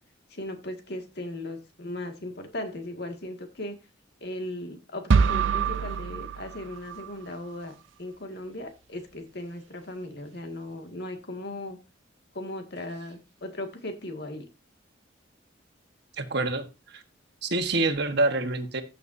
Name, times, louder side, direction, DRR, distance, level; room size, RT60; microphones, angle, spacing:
voice 1, 0.3-3.8 4.2-11.8 12.3-14.5, left 1 dB, 55° left, 5 dB, 2.1 m, -37 dB
sound 1, 5.1-7.1, right 5 dB, 75° right, 0.5 m, -25 dB
voice 2, 16.1-17.0 17.4-18.8, right 2 dB, 60° right, 7 dB, 1.4 m, -27 dB
15.5 x 7.0 x 2.7 m, 0.28 s
head